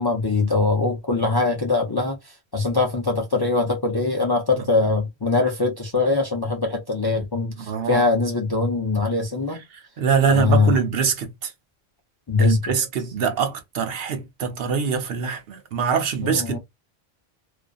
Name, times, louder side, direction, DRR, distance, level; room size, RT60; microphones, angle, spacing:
voice 1, 0.0-2.2 2.5-9.6 10.3-10.8 12.3-12.6 16.2-16.6, left 3 dB, 35° left, 0.4 m, -22 dB
voice 2, 7.6-8.0 10.0-11.5 12.4-16.6, right 6 dB, 70° right, 0.9 m, -23 dB
2.5 x 2.4 x 2.3 m
omnidirectional pair, 1.1 m